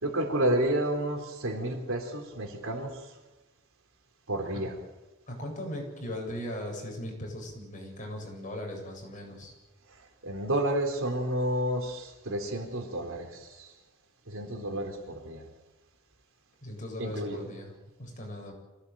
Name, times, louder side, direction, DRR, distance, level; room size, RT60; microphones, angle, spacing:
voice 1, 0.0-3.1 4.3-4.7 10.2-13.7 14.3-15.4 17.0-17.4, right 1 dB, 65° right, 4 dB, 4.2 m, -30 dB
voice 2, 5.3-9.5 16.6-17.7 18.0-18.5, left 1 dB, 35° left, 1 dB, 8.0 m, -38 dB
26.0 x 18.0 x 9.1 m, 1.1 s
head